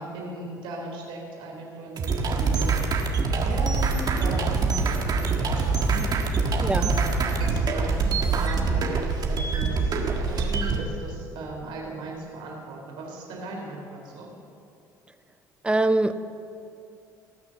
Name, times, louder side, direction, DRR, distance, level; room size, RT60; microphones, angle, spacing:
voice 1, 0.0-2.7 3.3-14.3, right 2 dB, 70° right, -1 dB, 3.4 m, -37 dB
sound 1, 2.0-10.8, right 4 dB, 50° right, 1.6 m, -24 dB
voice 2, 6.6-6.9 15.6-16.2, right 2 dB, 10° right, 11 dB, 0.7 m, -23 dB
18.0 x 6.2 x 7.5 m, 2.6 s
supercardioid pair, 70°, 9 cm